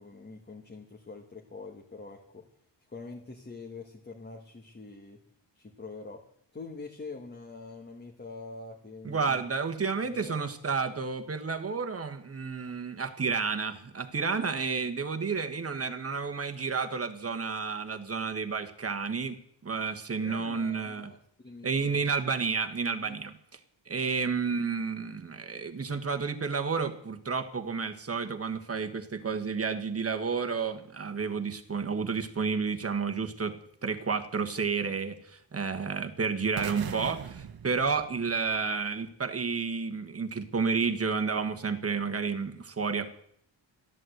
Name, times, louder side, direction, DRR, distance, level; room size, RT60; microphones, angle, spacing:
voice 1, 0.0-2.5 2.9-5.2 5.5-6.2 6.5-9.4 10.0-10.4 20.2-22.0 23.0-23.2, left 3 dB, 20° left, 1 dB, 1.6 m, -45 dB
voice 2, 9.0-19.4 19.6-21.1 21.6-23.3 23.9-33.6 33.8-43.1, right 5 dB, 30° right, 7 dB, 1.4 m, -31 dB
sound 1, 36.6-38.7, right 7 dB, 50° right, 1.2 m, -40 dB
13.5 x 11.0 x 7.9 m, 0.68 s
wide cardioid pair, 135°, 46 cm